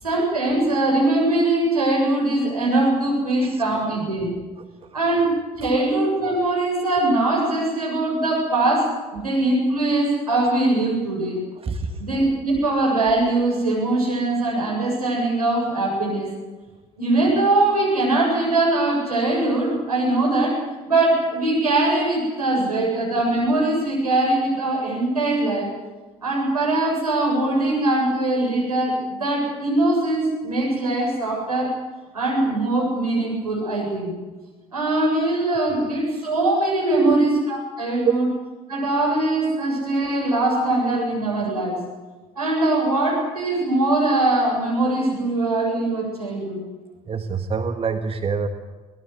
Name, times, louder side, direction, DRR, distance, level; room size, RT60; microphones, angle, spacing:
voice 1, 0.0-4.3 4.9-11.4 12.0-16.3 17.0-20.6 20.9-25.7 26.2-31.8 32.1-34.1 34.7-38.3 38.7-41.8 42.3-46.6, right 2 dB, 85° right, -3 dB, 8.0 m, -21 dB
voice 2, 11.6-12.0 35.7-35.8 36.9-37.2 38.0-38.1 47.1-48.5, right 5 dB, 30° right, 7 dB, 1.7 m, -24 dB
24.0 x 19.5 x 8.3 m, 1.3 s
figure-of-eight pair, 55°, 19 cm